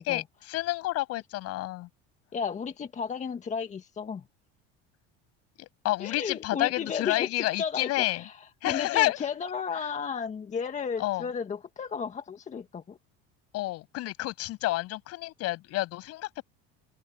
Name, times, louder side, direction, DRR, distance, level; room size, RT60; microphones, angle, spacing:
voice 1, 0.0-1.9 5.6-8.2 8.6-9.2 11.0-11.3 13.5-16.4, left 17 dB, 55° left, 7.8 m, -29 dB
voice 2, 2.3-4.2 6.0-13.0, left 6 dB, 25° left, 1.7 m, -34 dB
open air
cardioid pair, 135°, 29 cm